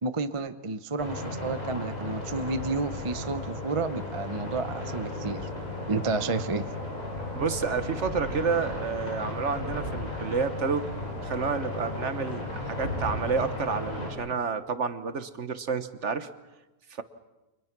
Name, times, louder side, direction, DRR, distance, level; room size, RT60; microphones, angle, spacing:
voice 1, 0.0-5.5 5.9-6.6, right 3 dB, 25° right, 10 dB, 0.7 m, -31 dB
sound 1, 1.0-14.1, left 2 dB, 55° left, 7.5 m, -35 dB
voice 2, 7.3-10.9 11.2-16.3 16.9-17.0, right 5 dB, 50° right, 11 dB, 1.3 m, -30 dB
29.5 x 25.0 x 6.0 m, 1.1 s
omnidirectional pair, 1.6 m